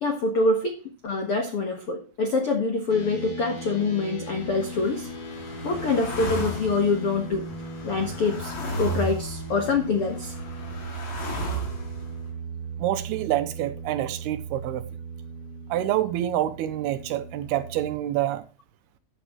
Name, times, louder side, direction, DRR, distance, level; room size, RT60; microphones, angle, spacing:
voice 1, 0.0-0.7 1.0-5.1 5.6-7.5 7.8-10.3, left 3 dB, 70° left, 1.3 m, -25 dB
sound 1, 2.9-17.9, right 2 dB, 25° left, 2.7 m, -38 dB
sound 2, 4.3-12.2, equal, 90° left, 8.5 m, -35 dB
voice 2, 12.8-14.8 15.7-18.4, right 13 dB, 80° right, 2.5 m, -27 dB
13.0 x 9.1 x 3.1 m
omnidirectional pair, 5.0 m